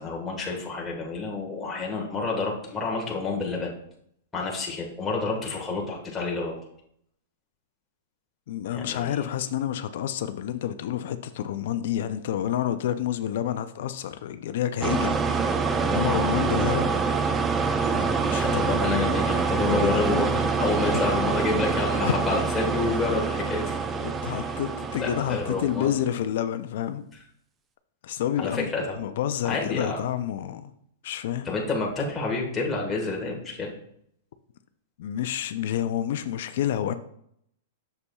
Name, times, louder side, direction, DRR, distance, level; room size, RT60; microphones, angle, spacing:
voice 1, 0.0-3.7 4.3-6.6 8.7-9.3 16.1-16.3 18.4-23.8 25.0-26.0 28.4-29.0 29.4-30.0 31.4-33.7, left 3 dB, 15° left, -2 dB, 1.4 m, -29 dB
voice 2, 8.5-17.0 17.9-18.8 19.8-20.0 20.9-21.0 22.0-22.1 24.0-27.0 28.0-28.7 29.0-30.7 31.0-31.5 35.0-36.9, left 10 dB, 65° left, 11 dB, 0.4 m, -29 dB
sound 1, 14.8-26.0, right 5 dB, 15° right, 0.5 m, -26 dB
6.8 x 6.7 x 2.3 m, 0.70 s
hypercardioid pair, 145°, 0 cm